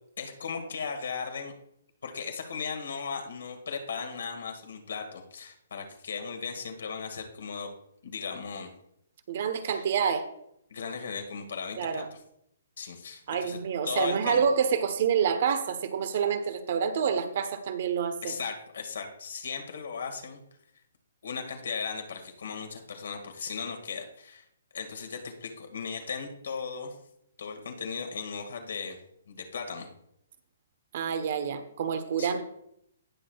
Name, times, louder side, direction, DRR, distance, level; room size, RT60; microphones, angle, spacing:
voice 1, 0.2-1.5 2.0-7.7 8.0-8.7 9.6-9.8 10.7-12.0 12.8-13.6 13.8-14.4 18.2-20.4 21.2-24.4 24.7-27.0 27.4-29.0 29.3-29.9 32.2-32.4, left 5 dB, 75° left, 4 dB, 1.9 m, -37 dB
voice 2, 9.3-10.3 11.8-12.1 13.3-18.4 30.9-32.5, right 7 dB, 50° right, 10 dB, 0.9 m, -28 dB
18.0 x 6.2 x 2.3 m, 0.76 s
hypercardioid pair, 150°, 0 cm